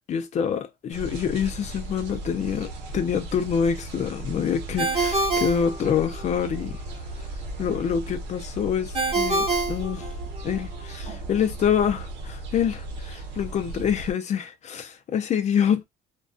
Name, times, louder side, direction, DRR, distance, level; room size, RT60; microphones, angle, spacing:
voice 1, 0.1-6.7 7.6-10.1 10.4-15.8, left 7 dB, 45° left, 0.4 m, -26 dB
sound 1, 0.9-14.1, right 2 dB, 85° right, 0.7 m, -36 dB
Ringtone, 4.8-6.4 8.9-10.6, right 3 dB, 35° right, 1.0 m, -26 dB
2.4 x 2.2 x 2.3 m
cardioid pair, 110°, 17 cm